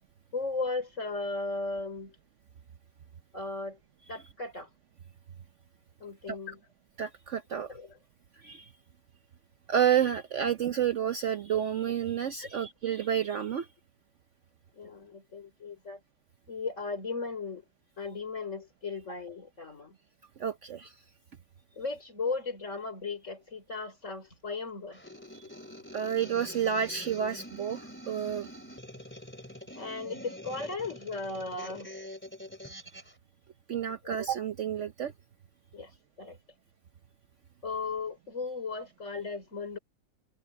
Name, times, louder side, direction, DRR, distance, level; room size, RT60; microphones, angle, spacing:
voice 1, 0.3-2.2 3.3-3.8 4.1-4.7 6.0-6.6 7.5-8.0 12.4-12.5 14.7-16.0 16.5-17.6 18.0-20.0 21.7-25.0 29.7-31.9 35.7-35.9 36.2-36.4 37.6-39.8, left 3 dB, 35° left, 4.4 m, -36 dB
voice 2, 7.0-7.7 8.4-8.7 9.7-13.7 20.4-20.9 25.3-25.4 25.9-28.5 33.7-35.1, right 9 dB, 90° right, 0.6 m, -30 dB
sound 1, 24.9-33.1, left 1 dB, 5° left, 3.1 m, -45 dB
omnidirectional pair, 2.2 m